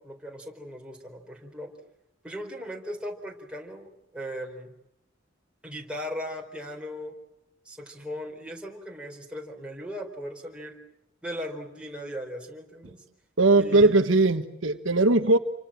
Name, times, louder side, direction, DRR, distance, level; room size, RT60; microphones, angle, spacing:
voice 1, 0.0-1.7 2.2-4.7 5.6-7.1 7.6-10.8 11.2-13.0 13.5-14.0, equal, 5° right, 0 dB, 4.4 m, -38 dB
voice 2, 13.4-15.4, right 2 dB, 75° right, 7 dB, 1.4 m, -20 dB
28.5 x 25.0 x 7.6 m, 0.86 s
head